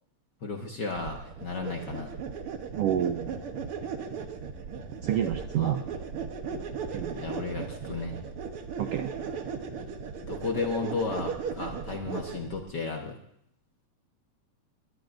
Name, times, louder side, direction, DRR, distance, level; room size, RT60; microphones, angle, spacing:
voice 1, 0.4-2.1 5.5-5.8 7.1-8.2 10.2-13.2, left 4 dB, 50° left, 2 dB, 1.4 m, -34 dB
sound 1, 0.9-12.6, right 6 dB, 60° right, 1.8 m, -37 dB
voice 2, 2.8-3.4 5.0-5.8 6.9-7.1 8.8-9.1, right 10 dB, 75° right, 7 dB, 1.4 m, -28 dB
20.5 x 20.5 x 2.6 m, 0.74 s
omnidirectional pair, 3.3 m